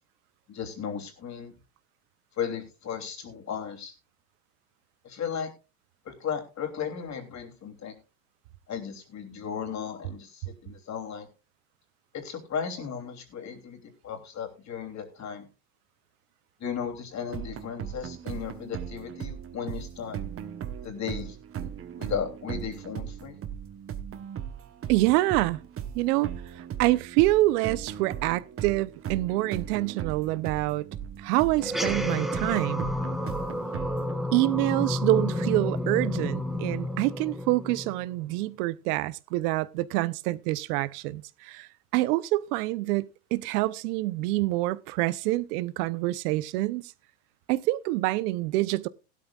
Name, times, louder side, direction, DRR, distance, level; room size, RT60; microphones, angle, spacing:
voice 1, 0.5-1.5 2.4-3.9 5.0-5.5 6.0-7.9 8.7-11.3 12.1-15.4 16.6-20.2 20.8-21.4 22.0-23.4, left 7 dB, 35° left, 3.1 m, -35 dB
sound 1, 17.3-34.1, right 9 dB, 25° right, 1.1 m, -38 dB
voice 2, 24.9-25.6 25.9-26.3 26.6-30.9 31.2-32.9 34.3-46.8 47.5-48.9, right 18 dB, 65° right, 0.9 m, -26 dB
sound 2, 31.6-38.3, left 1 dB, ahead, 1.2 m, -30 dB
16.0 x 12.0 x 2.4 m
supercardioid pair, 110°, 49 cm